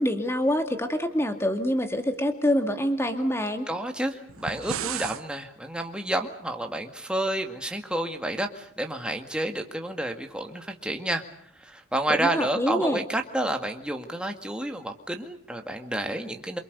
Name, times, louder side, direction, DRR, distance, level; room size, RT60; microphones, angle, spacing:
voice 1, 0.0-3.7 12.1-13.0, equal, 10° left, 6 dB, 2.2 m, -26 dB
voice 2, 3.7-11.2 11.6-16.6, right 1 dB, 5° right, 4 dB, 2.0 m, -30 dB
sound 1, 4.3-5.2, right 8 dB, 85° right, 1.0 m, -33 dB
28.0 x 24.5 x 6.8 m, 0.64 s
head